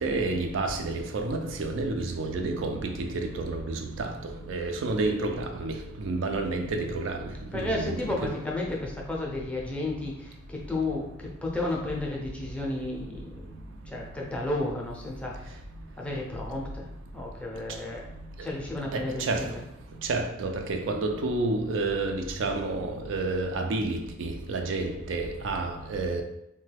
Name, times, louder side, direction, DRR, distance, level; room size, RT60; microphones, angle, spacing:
voice 1, 0.0-3.6 4.0-4.1 4.5-5.3 5.6-5.7 6.1-7.1 7.5-7.9 18.9-19.0 19.3-19.4 20.1-26.2, right 3 dB, 70° right, 0.4 m, -29 dB
voice 2, 7.5-15.6 16.0-16.9 17.1-18.0 18.4-19.6, left 2 dB, 5° left, 0.5 m, -33 dB
3.0 x 2.2 x 3.3 m
head